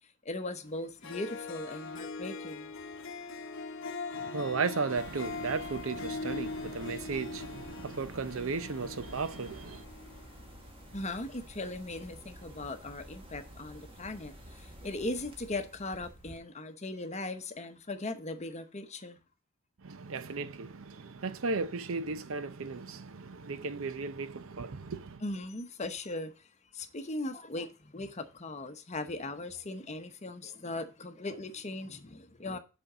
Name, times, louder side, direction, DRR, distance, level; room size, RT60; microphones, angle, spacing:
voice 1, 0.2-2.7 10.9-19.2 25.2-26.5 26.7-32.6, left 2 dB, 30° left, 0.9 m, -39 dB
Harp, 0.7-0.8 1.0-10.5, left 3 dB, 60° left, 0.9 m, -41 dB
voice 2, 4.1-9.8 19.8-25.2, right 4 dB, 65° right, 0.6 m, -35 dB
sound 1, 4.9-16.4, equal, 25° right, 1.4 m, -51 dB
6.3 x 5.2 x 6.8 m
head